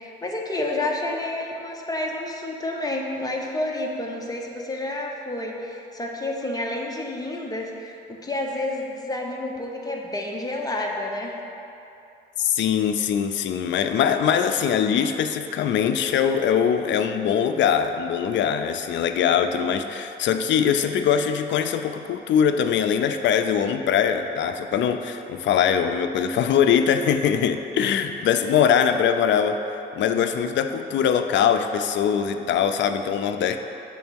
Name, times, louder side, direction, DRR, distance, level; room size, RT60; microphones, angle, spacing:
voice 1, 0.0-11.4, left 2 dB, 20° left, 0 dB, 1.0 m, -29 dB
voice 2, 12.4-29.6 29.9-33.6, left 8 dB, 65° left, 8 dB, 0.5 m, -22 dB
7.0 x 3.7 x 6.2 m, 2.9 s
cardioid pair, 90°, 20 cm